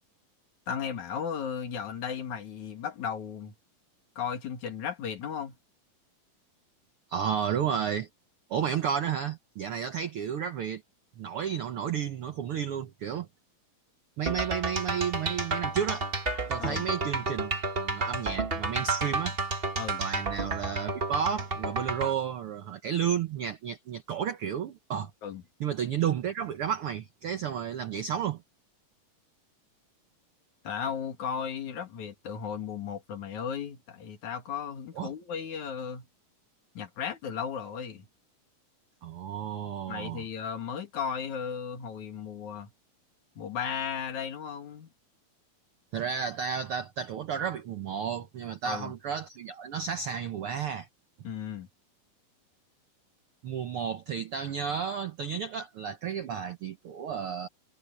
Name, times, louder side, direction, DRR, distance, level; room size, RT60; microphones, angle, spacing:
voice 1, 0.7-3.5 4.2-5.6 16.6-16.9 19.8-20.0 25.2-25.4 30.6-36.1 36.8-38.1 39.9-42.7 43.4-44.9 48.6-48.9 51.2-51.7, left 7 dB, 60° left, 3.5 m, -35 dB
voice 2, 7.1-8.1 8.5-10.8 11.2-13.3 14.2-16.0 16.5-19.4 20.0-25.1 25.6-28.4 35.0-35.1 39.0-40.2 45.9-50.9 53.4-57.5, right 8 dB, 80° right, 1.2 m, -32 dB
sound 1, 14.3-22.1, right 3 dB, 30° right, 1.0 m, -31 dB
omnidirectional pair, 4.0 m